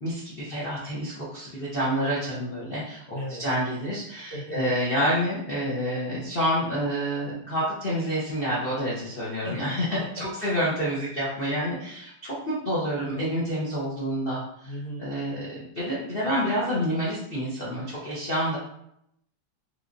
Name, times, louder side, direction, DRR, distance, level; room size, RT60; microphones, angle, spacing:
voice 1, 0.0-3.0 3.4-9.8 10.1-14.7 15.0-18.6, equal, 80° left, -8 dB, 0.5 m, -28 dB
voice 2, 3.1-3.4 4.3-4.7 9.3-10.6 14.6-15.1, equal, 45° left, -7 dB, 1.7 m, -37 dB
3.7 x 3.1 x 2.5 m, 0.75 s
omnidirectional pair, 2.4 m